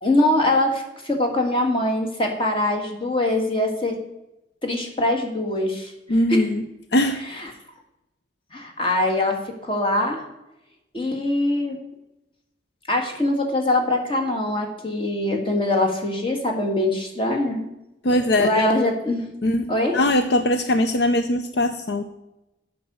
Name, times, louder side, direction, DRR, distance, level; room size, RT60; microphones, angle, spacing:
voice 1, 0.0-4.0 4.6-5.9 6.3-6.5 7.3-7.5 8.5-10.2 10.9-11.8 12.9-17.7 18.1-19.2 19.7-20.0, left 1 dB, 30° left, 2 dB, 1.7 m, -23 dB
voice 2, 6.1-6.6 6.9-7.2 18.0-18.7 19.4-22.0, left 1 dB, 65° left, 8 dB, 0.6 m, -21 dB
8.5 x 6.0 x 7.9 m, 0.93 s
head